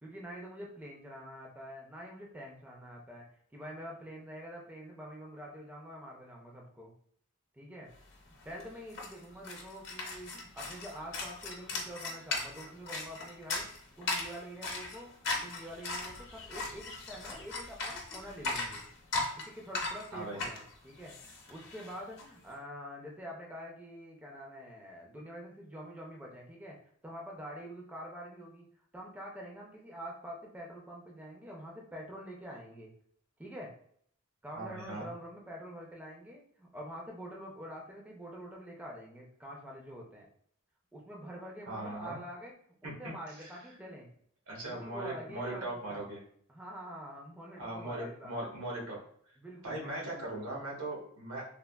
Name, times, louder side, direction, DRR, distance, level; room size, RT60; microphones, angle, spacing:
voice 1, 0.0-3.3 3.5-6.9 7.5-7.9 8.4-13.7 14.0-15.1 15.4-18.8 19.4-26.8 27.0-28.7 28.9-32.9 33.4-33.7 34.4-40.3 40.9-42.5 42.8-44.1 44.6-46.1 46.5-48.4 49.4-50.5, equal, 10° right, -1 dB, 0.4 m, -46 dB
sound 1, 8.1-8.2 8.4-22.2, left 3 dB, 60° left, 0.7 m, -38 dB
voice 2, 34.5-35.1 41.7-42.2 42.8-42.9 43.4-43.5 44.5-46.2 47.6-49.0 49.6-51.5, right 1 dB, 80° right, -3 dB, 1.1 m, -39 dB
3.3 x 2.2 x 2.2 m, 0.63 s
head